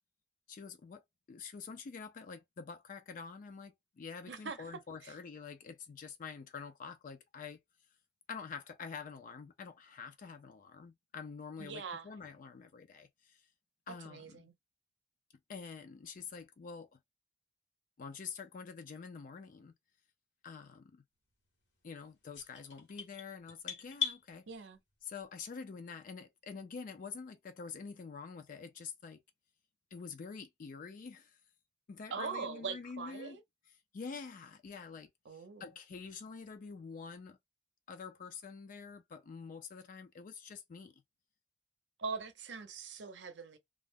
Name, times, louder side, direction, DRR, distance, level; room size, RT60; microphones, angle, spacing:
voice 1, 0.5-1.0 1.3-7.6 8.3-13.4 13.9-14.5 15.5-17.0 18.0-19.7 20.4-21.0 21.8-24.5 25.0-29.2 29.9-31.4 31.9-33.4 33.7-37.4 37.9-41.0, left 5 dB, 50° left, 0.4 m, -47 dB
voice 2, 4.3-4.6 5.0-5.1 11.6-12.1 13.9-14.5 24.5-24.8 32.1-33.4 35.3-35.6 42.0-43.6, right 5 dB, 70° right, 0.6 m, -42 dB
sound 1, 22.3-24.2, left 7 dB, 85° left, 1.1 m, -38 dB
2.3 x 2.0 x 3.4 m
head